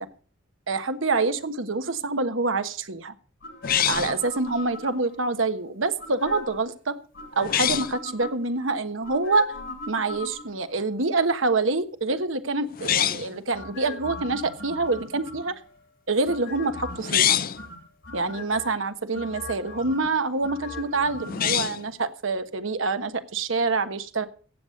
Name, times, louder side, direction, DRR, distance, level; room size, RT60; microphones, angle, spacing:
voice 1, 0.7-3.1 3.8-7.0 7.3-9.5 9.9-15.5 16.1-17.4 18.1-24.3, right 3 dB, 80° right, 9 dB, 1.3 m, -26 dB
sound 1, 3.4-5.2 6.0-6.7 7.1-8.6 9.0-10.7 13.5-15.7 16.3-17.2 17.6-18.7 19.1-21.5 21.8-21.9, left 3 dB, 65° left, 2.6 m, -39 dB
sound 2, 3.6-4.3 7.4-8.0 12.7-13.4 17.0-17.6 21.2-21.9, left 10 dB, 45° left, 0.5 m, -24 dB
15.5 x 8.2 x 6.5 m, 0.41 s
head